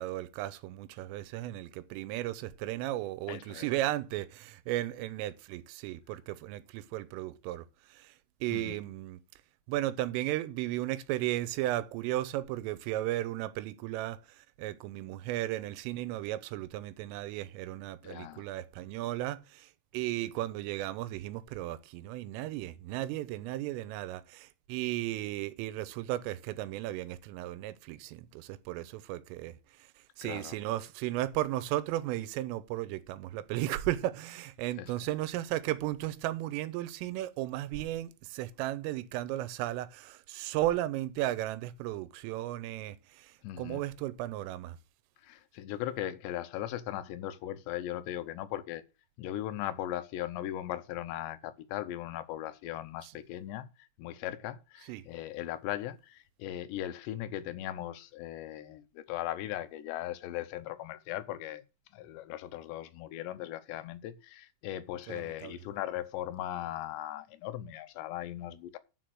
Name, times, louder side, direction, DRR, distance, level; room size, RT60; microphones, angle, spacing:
voice 1, 0.0-8.1 8.4-9.2 9.7-29.9 30.2-44.8 53.0-53.1 54.8-55.0 65.1-65.6, right 15 dB, 85° right, 3.4 m, -35 dB
voice 2, 3.3-3.7 8.5-8.7 18.0-18.4 30.2-30.6 34.8-34.9 43.4-43.8 45.2-48.8 49.2-53.7 54.0-61.6 61.9-68.8, left 13 dB, 80° left, 2.6 m, -38 dB
10.5 x 5.0 x 7.7 m
omnidirectional pair, 5.8 m